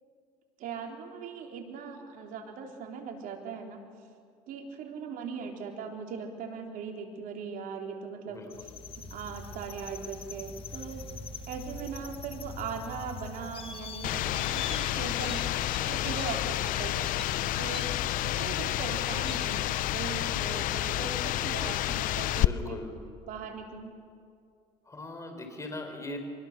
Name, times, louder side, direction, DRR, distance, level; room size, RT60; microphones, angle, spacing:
voice 1, 0.6-3.8 4.5-8.4 9.1-11.1 11.5-15.5 15.9-17.9 18.2-22.8 23.3-24.0, right 6 dB, 60° right, 2 dB, 3.7 m, -39 dB
sound 1, 8.5-22.4, left 3 dB, 35° left, 2.0 m, -43 dB
sound 2, 14.0-22.5, left 15 dB, 60° left, 0.6 m, -30 dB
voice 2, 15.8-16.3 18.5-19.2 22.3-22.9 24.8-26.2, left 2 dB, 20° left, 4 dB, 4.8 m, -41 dB
25.0 x 21.5 x 6.8 m, 2.3 s
supercardioid pair, 95°, 16 cm